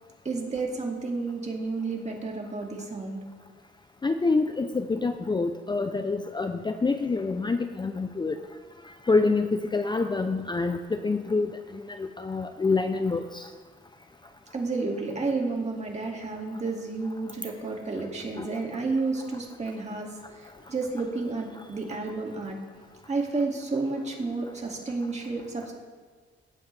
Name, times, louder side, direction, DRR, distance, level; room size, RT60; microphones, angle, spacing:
voice 1, 0.2-3.2 14.5-20.1 20.7-22.6 23.1-25.7, right 3 dB, 35° right, 0 dB, 2.3 m, -31 dB
voice 2, 4.0-8.4 9.1-11.5 12.0-13.4 18.3-18.5, left 3 dB, 20° left, 7 dB, 0.5 m, -26 dB
18.0 x 7.9 x 3.3 m, 1.5 s
cardioid pair, 85°, 21 cm